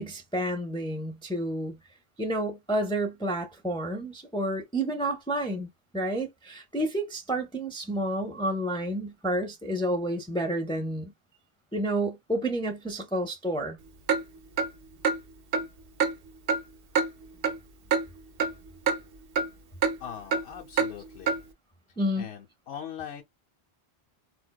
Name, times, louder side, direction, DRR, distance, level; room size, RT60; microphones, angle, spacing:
voice 1, 0.0-1.8 2.2-11.1 11.7-13.8 22.0-22.3, right 1 dB, 5° left, 0.4 m, -30 dB
Clock, 14.1-14.2 14.6-14.7 15.0-15.2 15.5-15.6 16.0-16.1 16.5-16.6 16.9-17.1 17.4-17.6 17.9-18.0 18.4-18.5 18.9-19.0 19.4-19.5 19.8-19.9 20.3-20.4 20.8-20.9 21.3-21.4, right 5 dB, 65° right, 0.8 m, -24 dB
voice 2, 20.0-21.4 22.2-23.2, left 9 dB, 80° left, 0.8 m, -41 dB
4.3 x 2.1 x 2.2 m
omnidirectional pair, 1.1 m